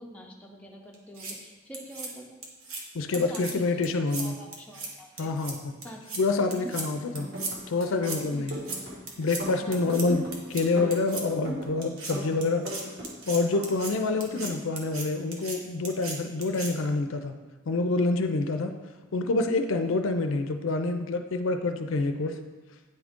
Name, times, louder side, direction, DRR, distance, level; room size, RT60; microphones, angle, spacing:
voice 1, 0.0-2.4 3.1-3.7 4.2-5.3 5.8-6.0 6.6-6.7 8.3-8.5 9.6-9.9 14.1-14.2, equal, 5° left, -1 dB, 0.6 m, -45 dB
sound 1, 0.9-1.3 1.7-2.1 2.4-2.8 3.1-3.5 3.8-4.3 4.5-4.9 5.2-5.5 5.8-6.2 6.5-6.9 7.2-7.5 7.8-8.2 8.5-8.8 9.1-9.4 9.7-10.1 10.3-10.6 10.9-11.2 11.8-12.1 12.4-13.9 14.2-14.5 14.8-15.1 15.3-15.6 15.9-16.2 16.4-16.7, right 3 dB, 80° right, 1.1 m, -36 dB
voice 2, 2.9-4.3 5.2-5.7 6.2-7.3 7.7-8.6 9.2-12.7 13.3-17.3 17.7-18.7 19.1-22.4, left 3 dB, 65° left, 6 dB, 0.4 m, -27 dB
sound 2, 7.0-7.6 7.9-8.9 9.2-10.3 10.6-11.7 12.1-13.1 13.4-14.5, equal, 55° right, 1.7 m, -37 dB
8.9 x 3.7 x 3.6 m, 1.3 s
head